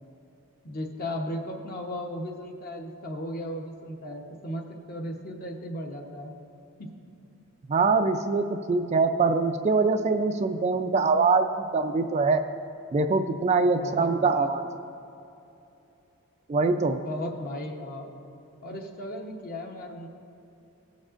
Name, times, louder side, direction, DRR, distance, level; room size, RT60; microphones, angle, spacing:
voice 1, 0.6-6.3 6.8-6.9 13.8-14.5 17.0-18.1 18.6-20.1, left 1 dB, 40° left, 2 dB, 0.9 m, -36 dB
voice 2, 7.7-12.4 12.9-14.6 16.5-17.0, right 4 dB, 30° right, 7 dB, 0.3 m, -23 dB
16.5 x 7.3 x 2.5 m, 2.8 s
head